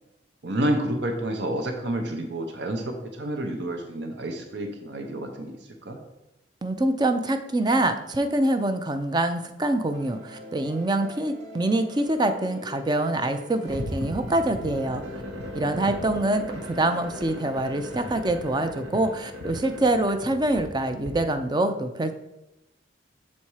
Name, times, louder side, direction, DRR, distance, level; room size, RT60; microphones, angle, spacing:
voice 1, 0.4-6.0, right 1 dB, 60° right, 4 dB, 0.8 m, -29 dB
voice 2, 6.6-15.0 15.5-22.1, right 1 dB, 20° right, 8 dB, 0.4 m, -25 dB
sound 1, 9.9-18.2, left 1 dB, 40° right, 1.2 m, -43 dB
sound 2, 13.7-21.1, equal, 85° right, 1.3 m, -37 dB
7.2 x 4.3 x 4.7 m, 0.92 s
head